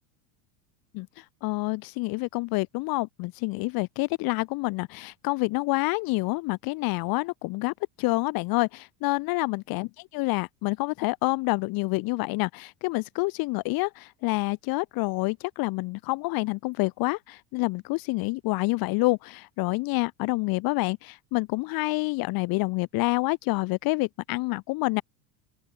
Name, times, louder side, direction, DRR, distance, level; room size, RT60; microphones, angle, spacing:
voice 1, 0.9-25.0, left 24 dB, 50° left, 0.5 m, -28 dB
open air
supercardioid pair, 115°, 49 cm